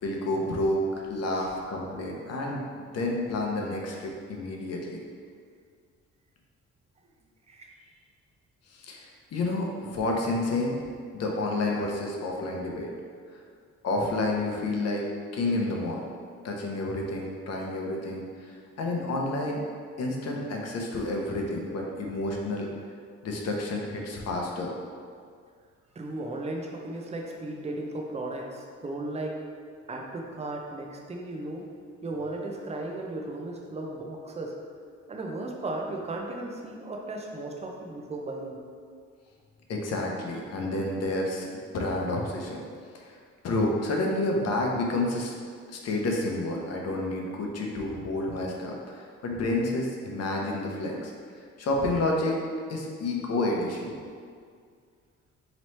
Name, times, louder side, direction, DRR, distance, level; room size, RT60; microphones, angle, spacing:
voice 1, 0.0-5.0 8.7-10.8 11.1-12.9 13.8-15.0 15.3-16.0 16.4-19.6 20.0-22.7 23.2-24.7 39.7-41.5 41.7-42.6 43.0-43.2 43.4-45.3 45.7-51.1 51.6-52.4 52.7-54.0, left 2 dB, 55° left, 0 dB, 0.7 m, -29 dB
voice 2, 25.9-29.4 29.9-31.7 32.0-34.5 35.1-38.6, right 2 dB, 20° right, 0 dB, 0.5 m, -35 dB
3.1 x 3.0 x 4.1 m, 2.1 s
cardioid pair, 90°, 30 cm